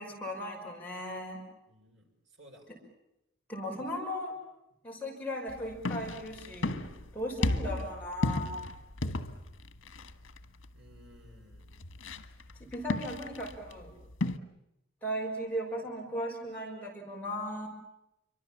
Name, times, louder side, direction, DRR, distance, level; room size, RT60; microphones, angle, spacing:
voice 1, 0.0-1.4 3.5-4.4 4.8-6.8 7.1-8.6 12.6-13.9 15.0-17.7, equal, 10° left, -2 dB, 5.8 m, -37 dB
voice 2, 1.7-2.7 10.7-11.8, equal, 65° right, 2 dB, 5.7 m, -57 dB
sound 1, 5.5-14.4, left 2 dB, 85° left, 1.4 m, -35 dB
29.0 x 24.5 x 7.4 m, 0.87 s
head